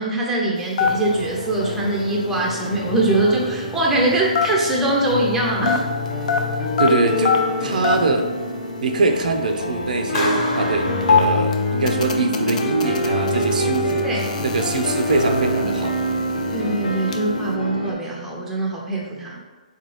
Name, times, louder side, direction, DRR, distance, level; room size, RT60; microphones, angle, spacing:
voice 1, 0.0-5.8 14.0-14.2 16.5-19.4, right 2 dB, 5° right, -3 dB, 0.5 m, -22 dB
sound 1, 0.6-5.3 5.6-8.2 8.5-8.6 8.8-9.1 9.6-17.2, left 6 dB, 60° left, 0.4 m, -25 dB
sound 2, 0.8-17.9, left 1 dB, 85° left, 0.7 m, -26 dB
voice 2, 6.8-7.3 7.6-8.3 8.8-15.9, right 3 dB, 75° right, 5 dB, 0.4 m, -23 dB
Clapping, 10.1-12.0, left 1 dB, 35° left, 1.0 m, -29 dB
4.1 x 2.3 x 3.0 m, 1.3 s
hypercardioid pair, 155°, 4 cm